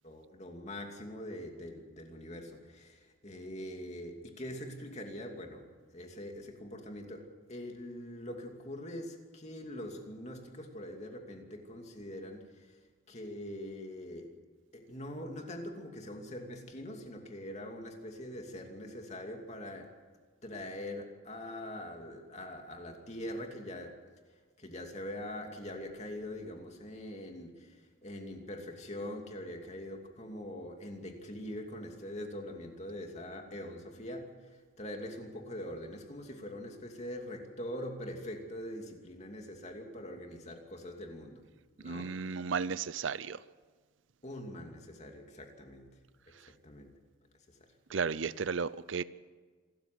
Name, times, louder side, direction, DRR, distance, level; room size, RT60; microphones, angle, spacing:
voice 1, 0.0-5.6 5.9-12.8 13.1-14.3 14.7-19.9 20.4-24.0 24.6-27.8 28.0-41.4 41.8-42.4 44.2-45.9 46.5-46.9 47.5-47.6, left 1 dB, 35° left, 2.7 m, -43 dB
voice 2, 41.8-43.4 46.3-46.5 47.9-49.0, right 5 dB, 65° right, 0.5 m, -34 dB
27.0 x 13.5 x 7.8 m
head